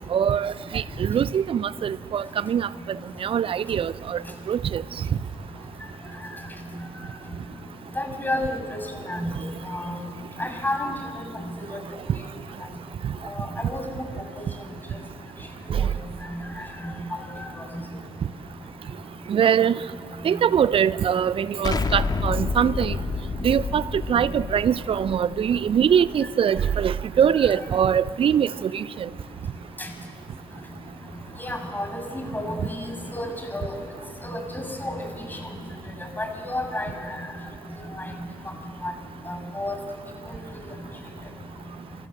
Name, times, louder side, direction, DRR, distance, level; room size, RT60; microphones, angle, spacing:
voice 1, 0.1-2.7 3.2-4.2 4.5-4.8 19.3-19.8 20.2-23.0 23.4-23.8 24.1-28.8, right 8 dB, 45° right, 18 dB, 0.8 m, -22 dB
voice 2, 8.0-8.8 9.1-10.0 10.4-10.9 11.7-11.8 13.3-14.0 14.4-14.5 16.3-16.4 16.8-17.5 29.8-29.9 31.4-31.9 32.1-32.8 33.1-33.7 34.2-35.0 35.3-35.4 36.2-36.9 38.0-38.1 38.8-38.9 39.3-39.8, left 1 dB, 15° left, 5 dB, 6.9 m, -30 dB
Explosion, 21.6-26.5, left 4 dB, 30° left, 2.1 m, -29 dB
29.5 x 24.5 x 7.9 m, 2.2 s
figure-of-eight pair, 40°, 13 cm